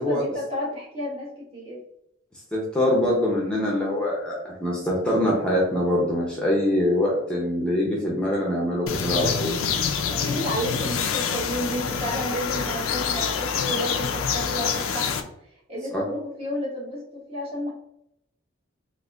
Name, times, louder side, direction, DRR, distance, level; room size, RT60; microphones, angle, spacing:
voice 1, 0.0-1.8 10.1-15.2 15.7-17.7, equal, 30° right, -4 dB, 1.3 m, -31 dB
voice 2, 2.5-9.6 15.9-16.0, left 1 dB, 5° left, -4 dB, 0.7 m, -24 dB
sound 1, 8.9-15.2, left 6 dB, 85° left, 0.4 m, -26 dB
4.0 x 2.6 x 2.4 m, 0.79 s
head